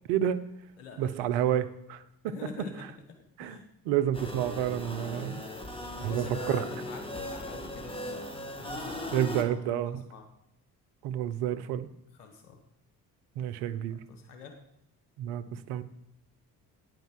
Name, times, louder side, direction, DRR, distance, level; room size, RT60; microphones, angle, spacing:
voice 1, 0.1-0.4 1.0-2.3 3.4-3.6 3.8-5.4 6.0-6.6 9.1-10.0 11.0-11.9 13.4-14.0 15.2-15.4 15.7-15.8, right 11 dB, 75° right, 13 dB, 0.8 m, -29 dB
voice 2, 0.8-1.2 1.4-1.6 2.3-2.9 3.4-3.7 5.1-5.4 5.9-8.3 8.6-10.3 12.2-12.6 14.1-14.5, left 5 dB, 85° left, 4 dB, 1.2 m, -45 dB
sound 1, 4.1-9.4, left 1 dB, 10° left, 1.9 m, -38 dB
9.1 x 5.1 x 7.5 m, 0.77 s
hypercardioid pair, 55°, 43 cm